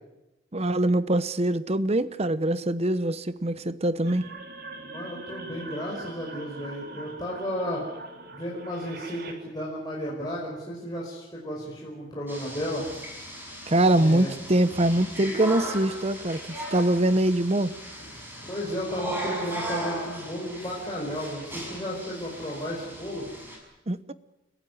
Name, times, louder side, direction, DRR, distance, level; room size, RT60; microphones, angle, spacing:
voice 1, 0.5-4.2 13.7-17.7 23.9-24.1, right 1 dB, 30° right, 15 dB, 0.9 m, -23 dB
sound 1, 4.1-9.3, right 2 dB, 50° right, 3.1 m, -42 dB
voice 2, 4.8-7.8 8.3-12.8 14.0-14.3 18.4-23.3, equal, 20° left, -4 dB, 5.2 m, -33 dB
sound 2, 12.3-23.6, right 1 dB, 10° right, 6.4 m, -37 dB
30.0 x 15.0 x 9.5 m, 0.97 s
head